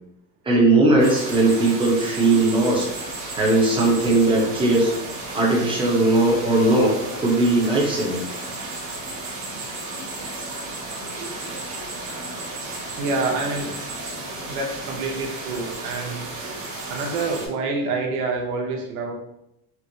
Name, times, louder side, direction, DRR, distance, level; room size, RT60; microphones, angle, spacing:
voice 1, 0.4-2.9 3.4-4.9 5.3-8.2, right 2 dB, 10° right, -3 dB, 0.8 m, -19 dB
sound 1, 1.0-17.5, right 2 dB, 30° right, 1.2 m, -33 dB
voice 2, 13.0-13.7 14.5-16.6 16.9-19.1, right 3 dB, 85° right, 1 dB, 0.9 m, -27 dB
4.5 x 2.1 x 2.6 m, 0.82 s
supercardioid pair, 140°, 44 cm